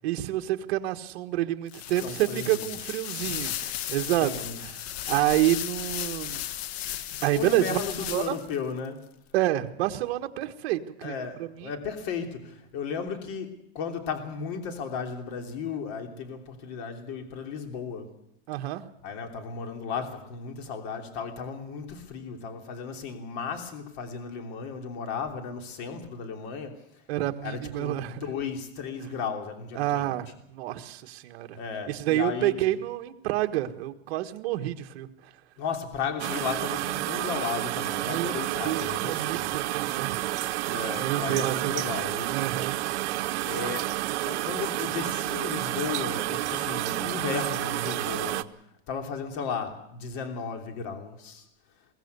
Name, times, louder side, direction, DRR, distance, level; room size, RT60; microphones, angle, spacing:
voice 1, 0.0-4.3 4.6-6.4 7.2-7.8 8.1-8.4 9.3-11.7 18.5-18.9 27.1-28.2 29.7-31.6 31.9-35.1 38.1-38.3 38.6-40.2 41.0-41.9 42.3-43.3, right 14 dB, 60° right, 1.5 m, -28 dB
sound 1, 1.7-8.6, left 12 dB, 65° left, 1.1 m, -35 dB
voice 2, 2.0-2.7 4.2-4.6 7.3-9.0 11.0-18.1 19.0-26.8 27.4-30.2 31.5-32.5 35.6-39.5 40.6-42.6 43.4-48.6 48.9-51.4, left 6 dB, 45° left, 3.1 m, -35 dB
sound 2, 36.2-48.4, right 16 dB, 85° right, 0.9 m, -30 dB
22.0 x 16.0 x 8.2 m
supercardioid pair, 165°, 34 cm